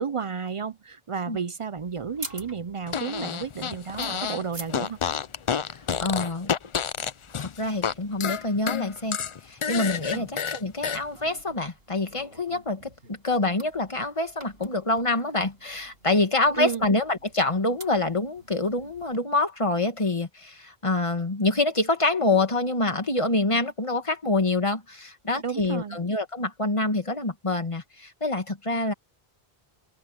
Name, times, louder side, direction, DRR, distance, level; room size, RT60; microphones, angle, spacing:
voice 1, 0.0-5.0 10.1-10.3 16.6-16.9 25.4-26.0, right 6 dB, 45° right, 0.4 m, -32 dB
sound 1, 1.8-19.2, right 1 dB, 70° right, 6.7 m, -49 dB
Fart, 2.9-4.4 4.7-7.9 8.2-11.0, left 7 dB, 45° left, 0.4 m, -29 dB
voice 2, 5.7-6.5 7.4-9.2 9.5-28.9, left 2 dB, 30° left, 1.9 m, -26 dB
open air
omnidirectional pair, 1.1 m